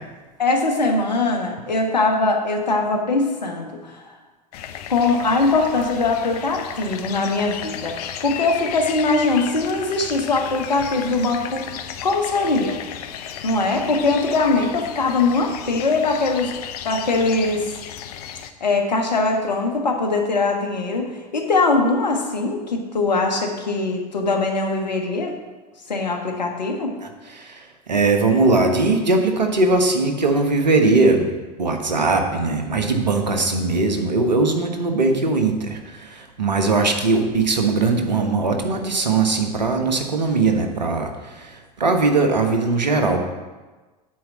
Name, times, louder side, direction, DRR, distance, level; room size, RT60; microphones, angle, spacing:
voice 1, 0.4-4.1 4.9-11.7 12.0-12.8 13.4-16.5 16.8-17.8 18.6-25.3 25.9-27.0, left 3 dB, 85° left, 3 dB, 1.5 m, -21 dB
sound 1, 4.5-18.5, left 9 dB, 65° left, 0.7 m, -34 dB
voice 2, 27.0-31.3 31.6-43.2, right 3 dB, 90° right, 5 dB, 1.3 m, -20 dB
9.2 x 4.6 x 7.4 m, 1.3 s
hypercardioid pair, 85°, 21 cm